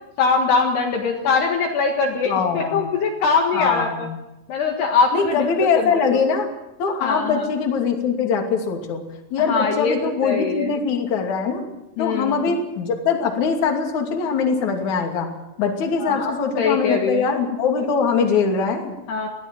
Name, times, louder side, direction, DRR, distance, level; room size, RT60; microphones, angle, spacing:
voice 1, 0.2-4.1 4.5-6.2 7.0-7.5 9.4-10.0 10.2-10.7 12.0-12.5 16.0-17.2 19.1-19.3, left 4 dB, 65° left, 1 dB, 3.5 m, -22 dB
voice 2, 2.3-2.9 3.5-4.1 5.1-6.5 6.8-9.0 9.3-11.7 12.0-15.3 15.6-18.9, left 5 dB, 45° left, 2 dB, 3.5 m, -22 dB
21.5 x 16.5 x 7.7 m, 0.93 s
omnidirectional pair, 5.6 m